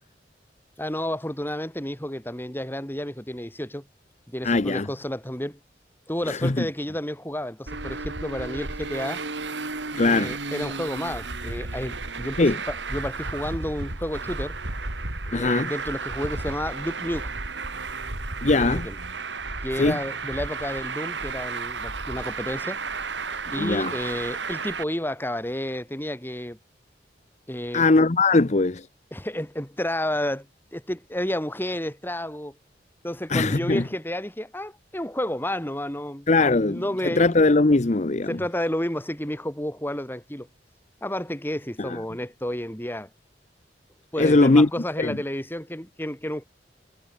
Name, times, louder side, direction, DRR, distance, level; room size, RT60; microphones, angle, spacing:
voice 1, 0.8-3.9 4.3-5.6 6.1-9.2 10.1-14.6 15.3-17.3 18.6-19.0 19.6-22.8 23.5-26.6 27.5-27.9 29.1-32.6 33.0-37.4 38.3-40.5 41.0-43.1 44.1-46.4, left 1 dB, 10° left, 4.7 m, -31 dB
voice 2, 4.4-4.9 6.3-6.7 10.0-10.3 12.4-12.6 15.3-15.7 18.4-18.9 19.8-20.0 23.6-23.9 27.7-28.9 33.3-33.8 36.3-38.4 41.8-42.0 44.2-44.7 45.0-45.2, left 3 dB, 40° left, 0.8 m, -20 dB
Traffic noise roadway noise, 7.7-24.8, right 3 dB, 85° right, 4.0 m, -33 dB
head